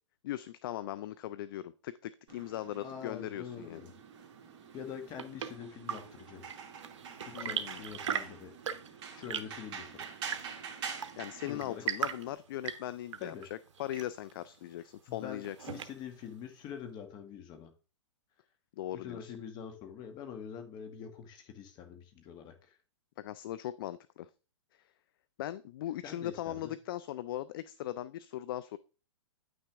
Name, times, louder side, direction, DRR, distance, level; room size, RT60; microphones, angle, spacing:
voice 1, 0.2-3.8 7.3-7.8 11.2-15.7 18.8-19.3 23.2-24.3 24.7-24.9 25.4-28.8, left 13 dB, 45° left, 16 dB, 0.4 m, -39 dB
sound 1, 2.3-12.3, right 6 dB, 45° right, 2.1 m, -46 dB
voice 2, 2.8-3.9 4.7-6.5 7.2-8.5 9.1-10.1 11.4-11.8 13.2-13.5 15.1-17.7 18.9-22.8 26.0-26.7, left 8 dB, 25° left, 6 dB, 1.3 m, -45 dB
Chirp tweet / Engine / Tap, 4.7-16.3, right 8 dB, 70° right, 1.0 m, -41 dB
9.3 x 6.1 x 3.5 m, 0.34 s
hypercardioid pair, 145°, 16 cm